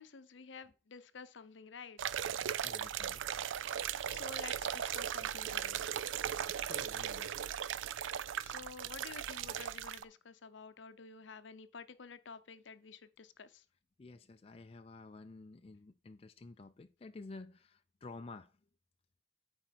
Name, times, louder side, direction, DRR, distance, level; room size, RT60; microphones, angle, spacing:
voice 1, 0.0-2.0 3.9-5.8 8.4-13.5, left 5 dB, 70° left, 0.7 m, -51 dB
sound 1, 2.0-10.0, right 9 dB, 80° right, 0.4 m, -38 dB
voice 2, 2.6-3.2 6.5-7.3 14.0-18.5, left 3 dB, 30° left, 0.4 m, -51 dB
9.1 x 4.4 x 4.5 m
head